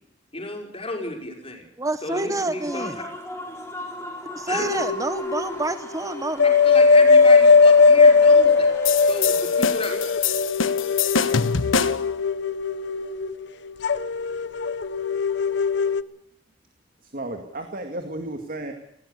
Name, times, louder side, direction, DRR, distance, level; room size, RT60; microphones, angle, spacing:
voice 1, 0.3-1.7 2.0-3.0 4.5-4.9 6.6-8.7 9.0-10.1, left 2 dB, 30° left, 2 dB, 5.4 m, -33 dB
voice 2, 1.8-3.0 4.2-6.5, right 2 dB, 15° right, 12 dB, 0.7 m, -28 dB
Human voice / Cheering / Applause, 2.2-9.9, left 2 dB, 15° left, 4.4 m, -38 dB
sound 1, 4.6-5.7 6.0-16.0, left 4 dB, 65° left, 0.9 m, -18 dB
sound 2, 8.8-12.1, left 6 dB, 90° left, 1.2 m, -25 dB
voice 3, 17.0-18.7, right 1 dB, 45° right, 6 dB, 2.1 m, -33 dB
20.0 x 16.5 x 8.3 m, 0.79 s
head